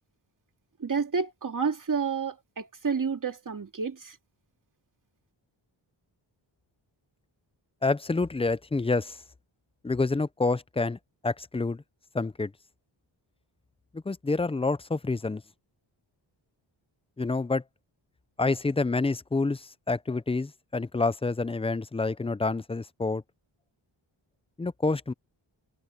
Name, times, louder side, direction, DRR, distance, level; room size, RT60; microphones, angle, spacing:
voice 1, 0.8-4.2, right 5 dB, 40° right, 2.6 m, -30 dB
voice 2, 7.8-9.2 9.8-11.0 11.2-11.8 12.1-12.5 13.9-15.4 17.2-17.6 18.4-23.2 24.6-25.1, left 3 dB, 15° left, 0.5 m, -28 dB
wide cardioid pair, 120°, 46 cm